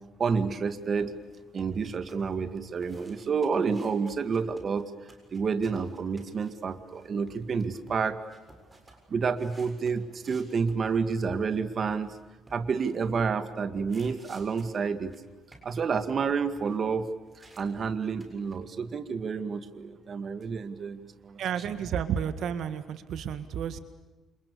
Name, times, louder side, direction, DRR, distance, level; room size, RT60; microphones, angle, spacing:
voice 1, 0.2-1.1 1.5-4.9 5.3-8.3 9.1-12.1 12.5-15.1 15.6-17.1 17.6-21.0 21.2-21.4, right 5 dB, 40° right, 10 dB, 2.0 m, -29 dB
sound 1, 0.6-11.6 11.9-13.4 13.8-17.6 17.9-18.6, right 2 dB, 15° right, 7.2 m, -55 dB
voice 2, 21.4-23.8, right 8 dB, 65° right, 11 dB, 1.9 m, -31 dB
29.5 x 28.0 x 7.0 m, 1.2 s
cardioid pair, 135°, 0 cm